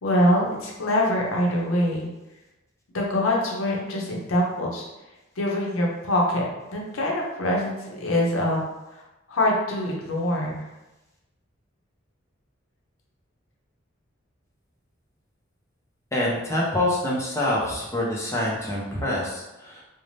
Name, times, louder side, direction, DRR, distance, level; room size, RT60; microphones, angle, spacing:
voice 1, 0.0-2.1 2.9-4.8 5.4-8.6 8.9-9.0 9.3-10.7, left 1 dB, 85° left, -2 dB, 0.6 m, -24 dB
voice 2, 16.1-19.8, left 1 dB, 15° left, -5 dB, 0.5 m, -26 dB
2.6 x 2.0 x 3.1 m, 1.0 s
head